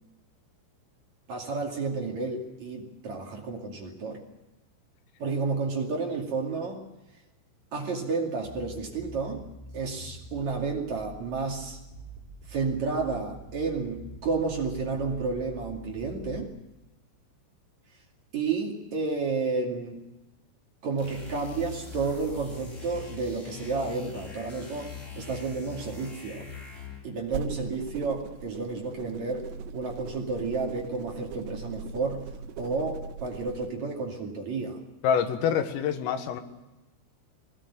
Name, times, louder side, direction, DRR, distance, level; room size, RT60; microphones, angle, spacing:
voice 1, 1.3-4.2 5.2-6.9 7.7-9.5 9.7-11.8 12.5-16.5 18.3-20.0 20.8-26.5 27.0-32.3 32.6-34.8, right 4 dB, 45° right, 0 dB, 3.0 m, -31 dB
sound 1, 8.4-16.4, right 2 dB, 10° right, 4.9 m, -46 dB
sound 2, 21.0-27.1, left 4 dB, 15° left, 4.0 m, -42 dB
sound 3, 27.2-33.7, right 5 dB, 85° right, 3.6 m, -40 dB
voice 2, 35.0-36.4, left 8 dB, 85° left, 6 dB, 4.2 m, -26 dB
21.5 x 19.0 x 8.6 m, 1.0 s
omnidirectional pair, 5.8 m